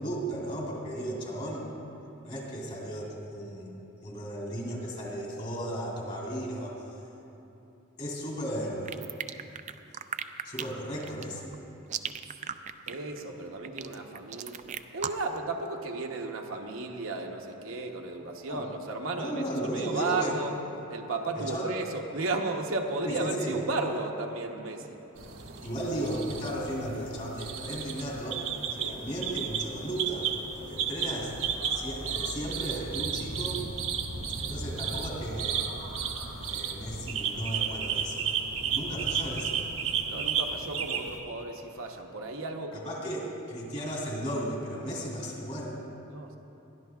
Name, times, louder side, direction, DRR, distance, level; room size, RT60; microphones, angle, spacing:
voice 1, 0.0-1.7 2.2-3.7 4.0-6.8 8.0-9.0 10.4-11.5 18.5-18.6 19.2-20.4 21.4-21.7 23.0-23.6 25.6-28.4 28.7-30.3 30.5-33.6 34.4-35.7 36.2-38.3 38.7-39.6 42.7-45.8, right 1 dB, 35° left, -3 dB, 2.9 m, -35 dB
sound 1, 8.9-15.4, right 8 dB, 35° right, 0.3 m, -37 dB
voice 2, 12.9-20.6 20.9-25.0 28.8-29.0 33.9-34.1 40.1-43.2 46.1-46.4, right 3 dB, 65° right, 2 dB, 0.8 m, -34 dB
sound 2, 25.2-41.2, right 6 dB, 80° right, 1.0 m, -33 dB
21.5 x 12.5 x 2.3 m, 3.0 s
head